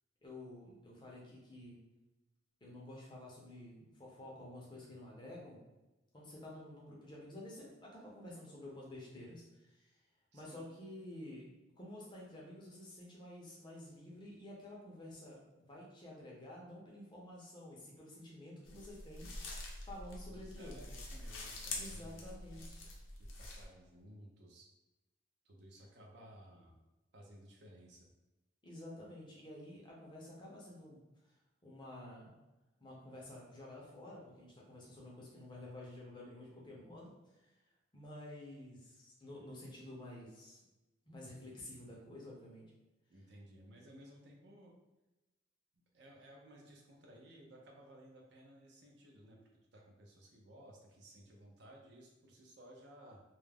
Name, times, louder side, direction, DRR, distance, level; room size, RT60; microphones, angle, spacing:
voice 1, 0.2-1.8 2.6-5.7 6.1-9.9 10.3-11.5 11.8-19.3 19.8-20.8 21.8-22.8 28.6-31.0 31.6-32.3 32.8-37.5 37.9-40.6 41.1-42.6, left 1 dB, 25° left, -4 dB, 0.5 m, -51 dB
voice 2, 10.3-10.7 20.3-22.6 23.1-24.7 25.4-26.8 27.1-28.1 43.1-44.7 45.9-49.4 49.7-53.2, right 1 dB, 55° right, 0 dB, 0.5 m, -58 dB
sound 1, 18.7-23.6, left 2 dB, 75° left, 0.6 m, -46 dB
2.3 x 2.0 x 3.3 m, 1.0 s
head